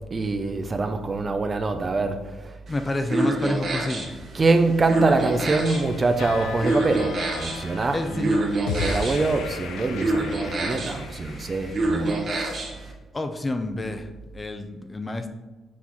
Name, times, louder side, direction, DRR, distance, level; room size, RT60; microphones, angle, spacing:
voice 1, 0.1-2.5 4.3-12.3, right 3 dB, 30° right, 0.6 m, -24 dB
voice 2, 2.7-4.2 7.9-8.4 13.1-15.3, left 2 dB, 25° left, 0.6 m, -29 dB
sound 1, 2.7-12.9, right 2 dB, 50° right, 1.4 m, -28 dB
sound 2, 5.6-11.8, left 5 dB, 85° left, 0.7 m, -35 dB
6.2 x 4.0 x 4.5 m
cardioid pair, 90°, 0 cm